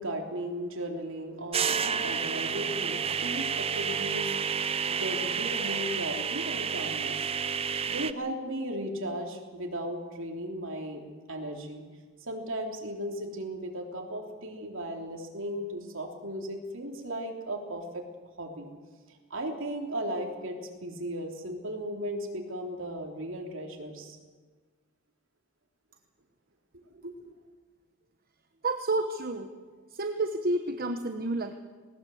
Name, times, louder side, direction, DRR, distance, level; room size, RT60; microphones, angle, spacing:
voice 1, 0.0-7.3 7.9-11.0 11.3-11.8 12.2-18.0 18.4-18.7 19.1-20.6 20.8-24.2 26.7-27.3, right 1 dB, 65° right, 1 dB, 3.5 m, -36 dB
sound 1, 1.5-8.1, right 6 dB, 25° right, 0.6 m, -30 dB
voice 2, 28.6-29.5 29.9-31.5, right 2 dB, 45° right, 6 dB, 1.1 m, -30 dB
19.5 x 19.5 x 7.9 m, 1.5 s
head